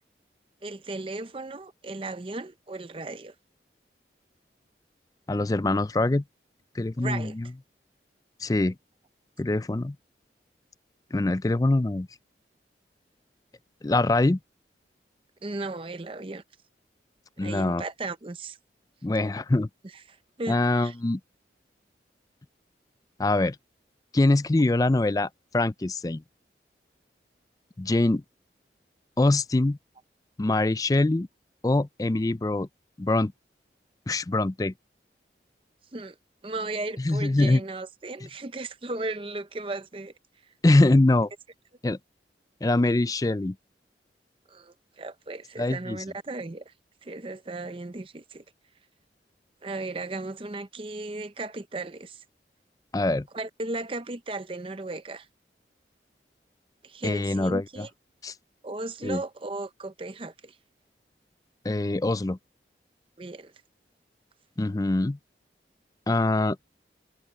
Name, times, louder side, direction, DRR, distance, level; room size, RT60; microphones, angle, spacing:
voice 1, 0.6-3.3 7.0-7.3 15.4-16.4 17.4-18.6 20.1-20.9 35.9-36.2 36.4-40.1 44.5-46.7 47.0-48.4 49.6-52.2 53.3-55.3 56.8-57.9 58.6-60.6 63.2-63.5, right 2 dB, 30° right, 0.7 m, -36 dB
voice 2, 5.3-6.2 6.8-7.5 8.4-8.7 9.4-10.0 11.1-12.1 13.8-14.4 17.4-17.8 19.0-19.7 20.5-21.2 23.2-23.6 24.1-26.2 27.8-28.2 29.2-29.8 30.4-31.3 31.6-32.7 33.0-33.3 34.1-34.7 37.0-37.6 40.6-41.3 41.8-42.0 42.6-43.6 45.6-46.0 52.9-53.3 57.0-57.9 58.2-58.3 59.0-59.2 61.6-62.4 64.6-65.2 66.1-66.6, left 2 dB, 20° left, 0.4 m, -23 dB
head